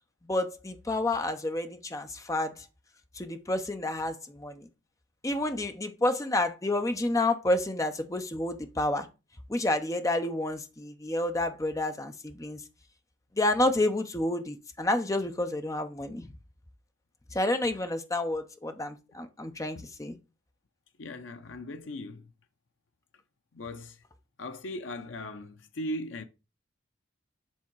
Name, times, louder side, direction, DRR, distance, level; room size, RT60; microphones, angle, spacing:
voice 1, 0.2-2.7 3.1-4.7 5.2-9.1 9.5-12.6 13.4-16.3 17.3-20.2, left 1 dB, 15° left, 0.7 m, -29 dB
voice 2, 21.0-22.2 23.5-23.9 24.4-26.3, left 1 dB, 75° left, 0.6 m, -38 dB
7.2 x 3.5 x 4.6 m
head